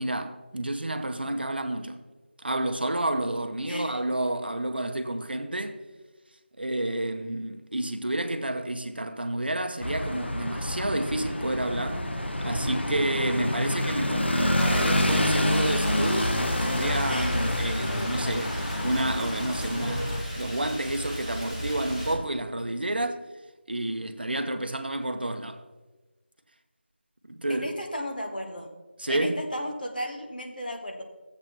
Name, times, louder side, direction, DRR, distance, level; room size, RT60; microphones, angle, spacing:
voice 1, 0.0-2.0 2.4-5.8 6.6-12.0 12.4-23.2 23.7-25.6 27.3-27.7 29.0-29.4, right 1 dB, 60° right, 0.8 m, -30 dB
voice 2, 3.7-4.0 17.1-17.4 27.5-28.7 29.1-31.0, equal, 50° left, 1.4 m, -34 dB
sound 1, 9.8-20.2, left 1 dB, 70° left, 1.0 m, -28 dB
Rain, 14.6-22.1, equal, 30° left, 1.8 m, -35 dB
14.0 x 7.9 x 3.0 m
figure-of-eight pair, 180°, 6 cm